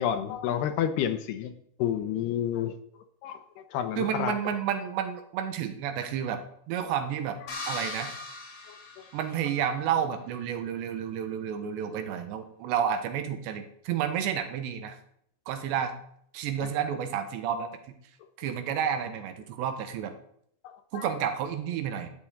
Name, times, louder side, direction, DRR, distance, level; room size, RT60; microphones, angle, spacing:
voice 1, 0.0-1.5 1.8-2.7 3.2-4.3 8.7-9.0 16.6-16.7 18.4-18.5 20.6-21.1, left 10 dB, 75° left, 8 dB, 2.8 m, -30 dB
voice 2, 4.0-6.4 6.7-7.4 7.7-8.2 9.1-15.0 15.5-15.9 16.3-18.0 18.4-20.2 20.9-22.1, right 8 dB, 80° right, 8 dB, 3.4 m, -30 dB
sound 1, 7.5-9.7, left 3 dB, 55° left, 6.1 m, -39 dB
12.0 x 7.1 x 8.8 m, 0.69 s
omnidirectional pair, 5.1 m